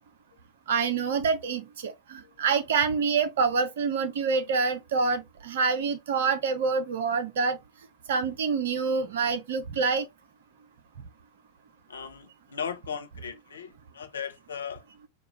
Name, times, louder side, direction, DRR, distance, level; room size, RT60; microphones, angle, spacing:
voice 1, 0.7-7.6 8.1-10.1, right 5 dB, 60° right, 0.7 m, -26 dB
voice 2, 11.9-14.8, left 7 dB, 70° left, 0.7 m, -37 dB
4.3 x 2.3 x 3.1 m
figure-of-eight pair, 90°, 0 cm